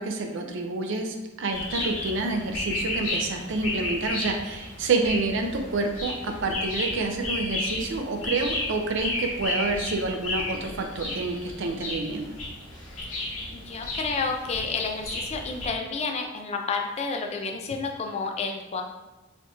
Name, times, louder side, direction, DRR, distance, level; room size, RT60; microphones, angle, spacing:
voice 1, 0.0-12.3, right 3 dB, 60° right, 4 dB, 0.4 m, -28 dB
sound 1, 1.5-15.7, left 2 dB, 75° left, 1.4 m, -33 dB
voice 2, 13.5-18.8, left 4 dB, 30° left, 3 dB, 0.3 m, -30 dB
4.2 x 2.8 x 2.4 m, 1.1 s
head